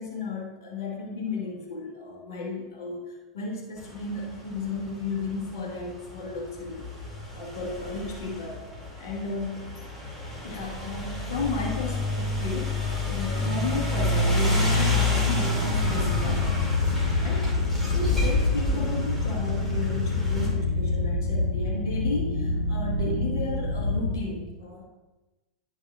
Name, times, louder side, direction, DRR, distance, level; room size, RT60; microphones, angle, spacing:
voice 1, 0.0-6.9 7.3-8.6 9.0-9.8 10.4-12.8 13.0-16.6 17.2-17.5 17.9-24.8, left 3 dB, 65° left, -1 dB, 1.7 m, -33 dB
sound 1, 3.8-20.5, left 2 dB, 5° left, 2.5 m, -29 dB
sound 2, 15.7-24.2, left 3 dB, 85° left, 0.7 m, -27 dB
11.5 x 5.3 x 2.5 m, 1.1 s
figure-of-eight pair, 85°, 2 cm